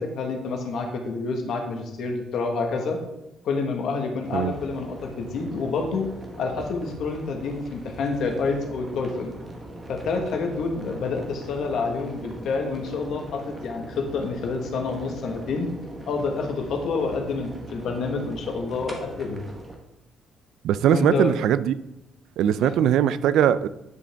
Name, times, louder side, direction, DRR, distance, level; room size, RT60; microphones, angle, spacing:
voice 1, 0.0-3.0 3.4-6.1 6.4-9.3 9.9-15.7 16.1-19.4 20.9-21.3 22.6-22.7, left 4 dB, 55° left, 3 dB, 1.3 m, -28 dB
sound 1, 4.2-19.7, right 1 dB, 15° right, 1.0 m, -41 dB
voice 2, 20.6-21.7 22.4-23.7, right 10 dB, 70° right, 15 dB, 0.3 m, -20 dB
9.7 x 5.1 x 3.4 m, 0.88 s
cardioid pair, 175°, 0 cm